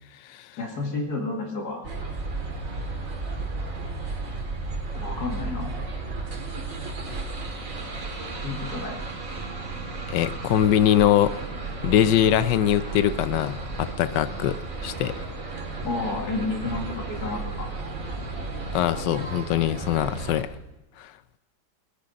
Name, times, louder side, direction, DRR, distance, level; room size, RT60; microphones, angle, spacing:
voice 1, 0.6-1.9 4.9-5.7 8.4-9.0 15.8-17.7, left 3 dB, 65° left, 1 dB, 2.8 m, -31 dB
sound 1, 1.8-20.4, right 3 dB, 50° right, 2.3 m, -33 dB
voice 2, 10.1-11.3 11.8-15.1 18.7-20.5 21.0-21.1, left 11 dB, 85° left, 14 dB, 1.3 m, -22 dB
18.5 x 10.0 x 5.3 m, 1.0 s
omnidirectional pair, 1.8 m